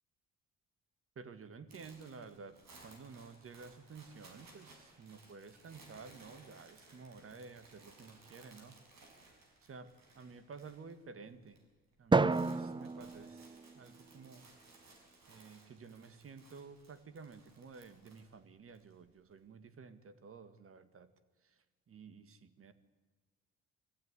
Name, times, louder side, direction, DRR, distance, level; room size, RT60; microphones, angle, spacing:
voice 1, 1.2-2.6 2.8-8.8 9.6-11.6 12.0-14.5 15.3-21.1 21.4-22.7, right 5 dB, 45° right, 12 dB, 1.8 m, -52 dB
sound 1, 1.7-11.0 11.2-11.6 11.9-18.9, right 3 dB, 65° right, 5.8 m, -61 dB
Drum, 12.1-14.4, right 3 dB, 15° right, 0.6 m, -32 dB
22.5 x 15.0 x 9.7 m, 1.4 s
cardioid pair, 90°, 30 cm